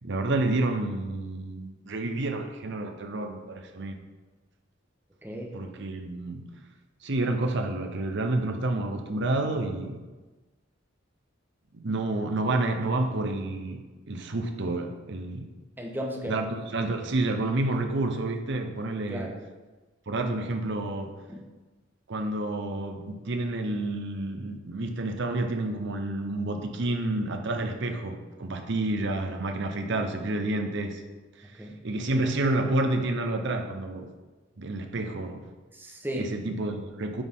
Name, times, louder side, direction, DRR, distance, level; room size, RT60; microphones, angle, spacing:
voice 1, 0.0-4.0 5.5-6.5 7.0-10.0 11.8-15.5 16.3-19.3 20.1-21.2 22.1-31.0 31.4-31.5 31.8-34.1 34.6-35.5 36.1-37.2, right 2 dB, 65° right, 6 dB, 0.8 m, -29 dB
voice 2, 15.8-16.5 19.1-19.3 21.3-21.4 31.6-31.7 35.7-36.3, equal, 10° right, -1 dB, 1.0 m, -35 dB
9.6 x 4.1 x 3.7 m, 1.2 s
head